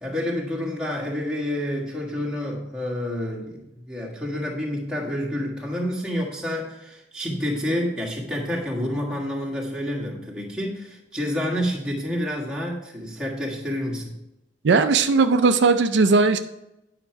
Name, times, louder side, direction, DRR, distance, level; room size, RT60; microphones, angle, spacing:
voice 1, 0.0-14.1, left 1 dB, 5° right, -3 dB, 1.6 m, -28 dB
voice 2, 14.6-16.4, right 4 dB, 70° right, 8 dB, 0.5 m, -18 dB
9.6 x 5.8 x 4.5 m, 0.90 s
head